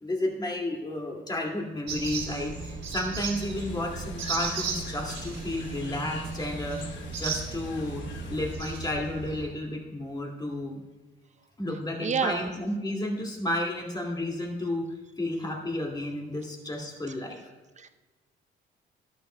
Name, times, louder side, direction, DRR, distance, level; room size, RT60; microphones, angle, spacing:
voice 1, 0.0-6.8 7.2-8.0 8.3-10.8 11.6-14.9 15.2-17.4, left 1 dB, 20° left, -1 dB, 2.2 m, -32 dB
sound 1, 1.9-9.5, right 4 dB, 65° right, 3.0 m, -35 dB
sound 2, 3.4-8.5, left 5 dB, 70° left, 1.1 m, -45 dB
voice 2, 12.0-12.5 17.8-17.9, right 6 dB, 35° right, 8 dB, 0.7 m, -28 dB
12.5 x 12.0 x 2.2 m, 1.2 s
cardioid pair, 90°, 20 cm